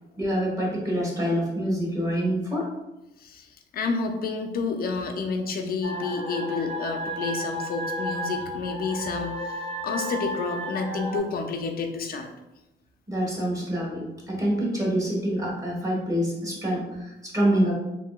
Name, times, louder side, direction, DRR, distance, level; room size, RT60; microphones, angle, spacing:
voice 1, 0.2-2.7 13.1-17.7, equal, 15° right, -3 dB, 1.3 m, -26 dB
voice 2, 3.2-12.3, left 4 dB, 50° left, 4 dB, 0.5 m, -30 dB
sound 1, 5.8-11.2, equal, 35° right, 0.8 m, -32 dB
3.1 x 2.7 x 2.3 m, 0.96 s
cardioid pair, 90°, 20 cm